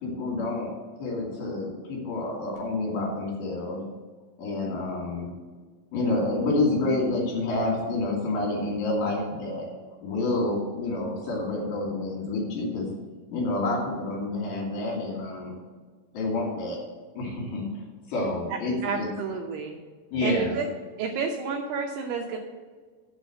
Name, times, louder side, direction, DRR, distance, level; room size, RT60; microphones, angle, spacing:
voice 1, 0.0-0.7 1.0-3.8 4.4-5.3 5.9-9.6 10.0-12.9 13.3-15.5 16.1-16.8 17.2-17.8 18.1-19.1 20.1-20.6, left 2 dB, 65° left, -2 dB, 4.7 m, -28 dB
voice 2, 18.8-19.8 20.2-20.7 21.0-22.4, right 5 dB, 75° right, 1 dB, 2.5 m, -30 dB
8.2 x 6.2 x 7.9 m, 1.4 s
omnidirectional pair, 5.5 m